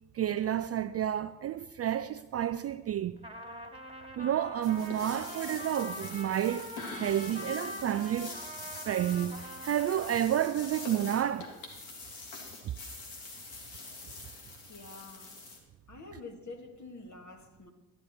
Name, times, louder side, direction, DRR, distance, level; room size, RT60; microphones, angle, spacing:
voice 1, 0.1-3.2 4.2-6.7 7.0-8.4 8.9-11.5, right 11 dB, 35° right, 0.4 m, -30 dB
Trumpet, 3.2-11.1, equal, 15° right, 2.0 m, -44 dB
sound 1, 4.6-15.6, left 3 dB, 80° left, 2.0 m, -45 dB
voice 2, 14.7-15.4 15.9-17.7, left 3 dB, 40° left, 2.0 m, -47 dB
13.0 x 10.0 x 4.3 m
hypercardioid pair, 40°, 45 cm